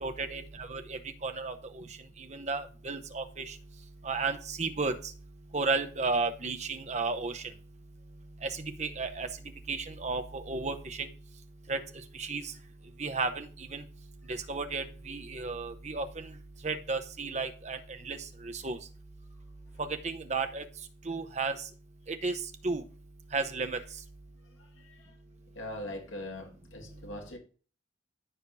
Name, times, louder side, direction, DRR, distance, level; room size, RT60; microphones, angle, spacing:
voice 1, 0.0-1.8 2.3-3.5 4.0-5.0 5.5-7.4 8.4-9.3 9.7-11.1 11.7-11.8 12.2-12.4 13.0-13.8 14.5-16.3 16.6-17.8 18.0-18.2 18.4-18.8 19.8-20.6 21.1-21.6 22.1-22.8 23.3-23.8, right 4 dB, 35° right, 7 dB, 0.8 m, -33 dB
voice 2, 25.6-27.4, left 1 dB, 90° left, 2 dB, 1.9 m, -41 dB
14.5 x 5.1 x 2.7 m, 0.39 s
head